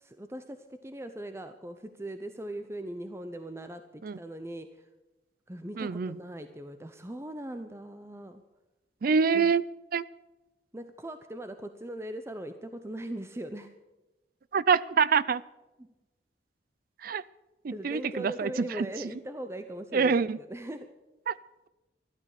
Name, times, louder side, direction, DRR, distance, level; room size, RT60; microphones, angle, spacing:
voice 1, 0.0-4.9 5.5-8.4 9.3-9.5 10.7-13.7 15.8-15.9 17.7-20.9, right 1 dB, 15° right, 8 dB, 0.7 m, -40 dB
voice 2, 5.8-6.2 9.0-9.6 9.9-10.0 14.5-15.4 17.0-17.2 17.6-18.9 19.9-20.4 21.3-21.4, right 5 dB, 55° right, 19 dB, 0.4 m, -25 dB
13.5 x 12.5 x 6.7 m, 1.1 s
head